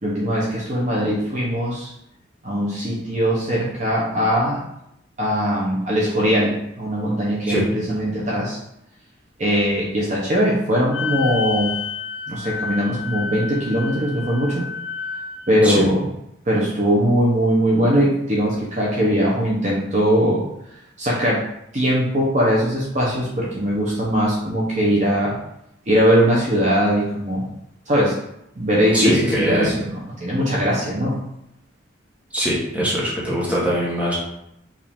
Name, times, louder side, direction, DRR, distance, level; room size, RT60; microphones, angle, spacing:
voice 1, 0.0-1.9 2.4-4.6 5.2-8.6 9.4-11.8 12.3-14.7 15.5-16.1 16.5-20.4 21.0-21.5 21.7-25.4 25.9-27.5 27.9-28.1 28.6-29.9 30.2-31.2, equal, 40° right, -4 dB, 0.8 m, -20 dB
Wind instrument woodwind instrument, 10.9-15.6, left 5 dB, 85° left, 0.4 m, -30 dB
voice 2, 28.9-29.7 32.3-34.2, equal, 10° right, -6 dB, 1.1 m, -22 dB
4.9 x 2.6 x 3.5 m, 0.79 s
head